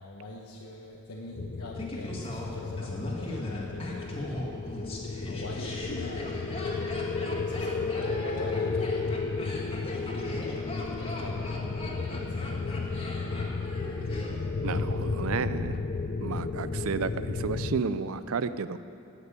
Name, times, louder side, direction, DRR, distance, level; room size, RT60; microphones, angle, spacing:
voice 1, 0.0-4.5 5.2-6.3 7.4-9.6 10.8-11.5 12.1-13.0, left 2 dB, 90° left, -2 dB, 1.2 m, -43 dB
sound 1, 1.3-17.8, left 4 dB, 40° left, 0.5 m, -33 dB
Laughter, 1.8-14.8 15.0-15.1, left 1 dB, 25° left, 2.0 m, -39 dB
voice 2, 14.6-15.8 16.2-18.8, right 5 dB, 75° right, 13 dB, 0.5 m, -32 dB
17.0 x 6.1 x 9.0 m, 2.8 s
head